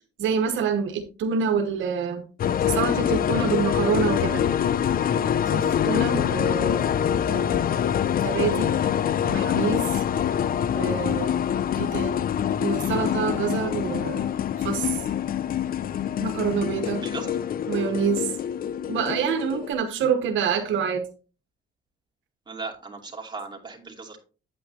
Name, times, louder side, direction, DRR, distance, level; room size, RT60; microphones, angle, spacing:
voice 1, 0.2-2.3 2.7-4.5 5.5-7.0 7.3-7.6 8.2-8.8 9.2-10.0 10.7-11.4 11.8-12.3 12.6-14.3 14.6-15.0 16.2-17.0 17.7-18.3 18.9-21.1, right 6 dB, 80° right, 1.0 m, -27 dB
sound 1, 2.4-19.7, left 9 dB, 45° left, 0.4 m, -25 dB
voice 2, 16.8-17.3 22.5-24.2, right 4 dB, 20° right, 2.6 m, -37 dB
8.8 x 8.7 x 2.8 m
cardioid pair, 90°, 20 cm